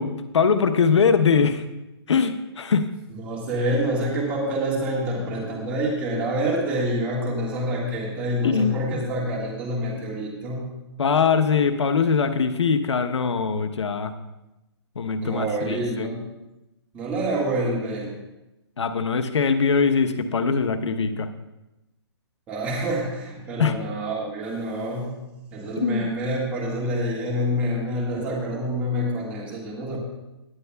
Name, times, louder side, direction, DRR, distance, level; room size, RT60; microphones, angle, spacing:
voice 1, 0.0-1.6 2.1-2.9 8.4-8.8 11.0-14.1 15.0-16.1 18.8-21.3 23.6-23.7 25.8-26.1, left 5 dB, 85° left, 8 dB, 0.9 m, -22 dB
voice 2, 3.1-10.7 15.2-16.2 16.9-18.1 22.5-25.2 25.5-30.0, equal, 10° right, -4 dB, 1.7 m, -27 dB
17.5 x 9.5 x 2.3 m, 0.98 s
hypercardioid pair, 170°, 14 cm